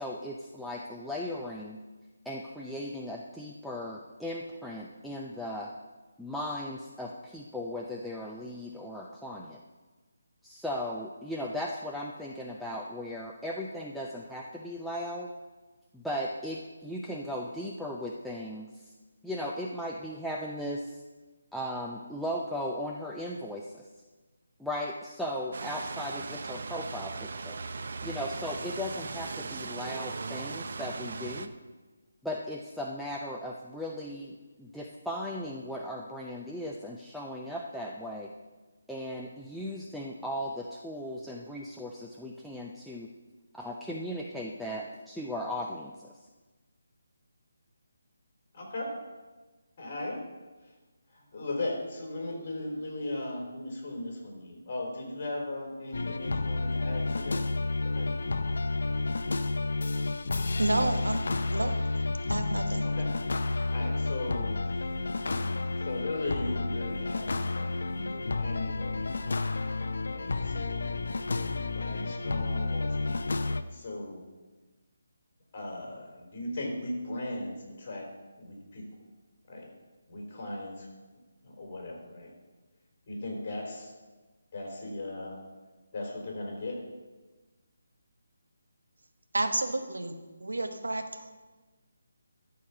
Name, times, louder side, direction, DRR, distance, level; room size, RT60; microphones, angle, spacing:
voice 1, 0.0-1.8 2.3-5.7 6.2-9.6 10.4-15.3 15.9-18.7 19.2-20.9 21.5-23.9 24.6-27.6 28.0-31.5 32.2-38.3 38.9-43.1 43.5-46.1, left 1 dB, ahead, -3 dB, 0.5 m, -37 dB
sound 1, 25.5-31.5, right 4 dB, 55° right, 0.7 m, -38 dB
voice 2, 48.5-48.9 49.8-50.2 51.1-57.4 57.8-58.1 62.8-63.1 63.7-64.8 65.8-69.3 70.0-74.2 75.5-78.1 78.4-78.9 79.5-79.7 80.1-80.9 81.4-82.3 83.1-83.9 84.5-85.4 85.9-86.8, left 2 dB, 40° left, -1 dB, 3.8 m, -38 dB
sound 2, 55.9-73.6, left 3 dB, 65° left, 0.6 m, -31 dB
voice 3, 60.6-61.7 62.3-62.9 89.3-91.3, right 2 dB, 90° right, 6 dB, 1.2 m, -31 dB
12.5 x 4.7 x 6.9 m, 1.3 s
figure-of-eight pair, 160°, 0 cm